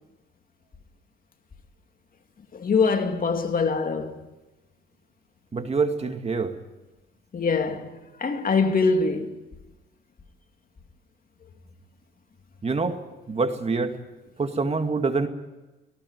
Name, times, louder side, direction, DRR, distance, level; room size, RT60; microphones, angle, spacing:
voice 1, 2.5-4.2 7.3-9.4, left 4 dB, 45° left, 2.4 m, -24 dB
voice 2, 5.5-6.5 12.6-13.0 13.3-14.0 14.4-15.3, right 4 dB, 30° right, 2.3 m, -25 dB
18.5 x 18.0 x 9.6 m
cardioid pair, 90°, 20 cm